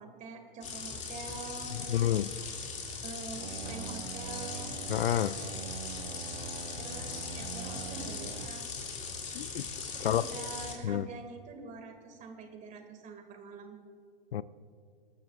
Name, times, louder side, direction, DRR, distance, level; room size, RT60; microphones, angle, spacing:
voice 1, 0.0-2.0 3.0-4.8 6.8-8.7 9.9-13.8, right 4 dB, 25° right, 2.3 m, -45 dB
sound 1, 0.6-10.7, left 5 dB, 25° left, 2.5 m, -40 dB
voice 2, 1.7-2.3 4.9-5.4 9.3-9.7 10.0-10.2 10.8-11.1 14.3-14.4, left 11 dB, 75° left, 0.5 m, -29 dB
sound 2, 3.4-8.5, right 8 dB, 80° right, 0.9 m, -43 dB
26.0 x 12.0 x 2.5 m
hypercardioid pair, 115°, 29 cm